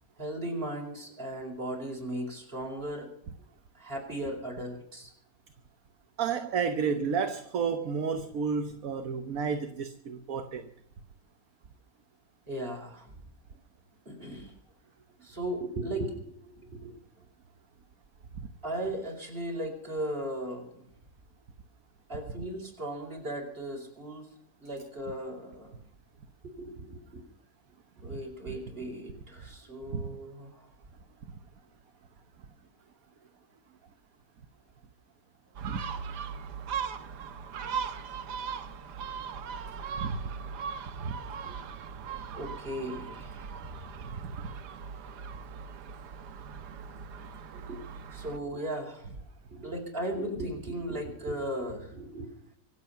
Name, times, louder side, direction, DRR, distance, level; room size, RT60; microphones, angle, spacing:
voice 1, 0.2-3.1 3.7-5.1 12.5-13.2 14.0-14.5 15.2-16.9 18.6-20.9 22.1-24.3 24.6-25.8 26.4-27.2 28.0-30.7 41.4-41.5 42.3-43.9 47.5-47.8 48.1-49.1 49.5-52.3, right 1 dB, 35° right, 5.0 m, -37 dB
voice 2, 6.2-10.7 28.1-28.2 29.9-30.1 35.6-35.8 40.0-40.2 41.0-41.2 44.2-44.5, right 6 dB, 60° right, 1.4 m, -31 dB
Gull seagull, 35.6-48.4, right 6 dB, 85° right, 1.6 m, -39 dB
25.0 x 8.4 x 5.7 m
omnidirectional pair, 1.7 m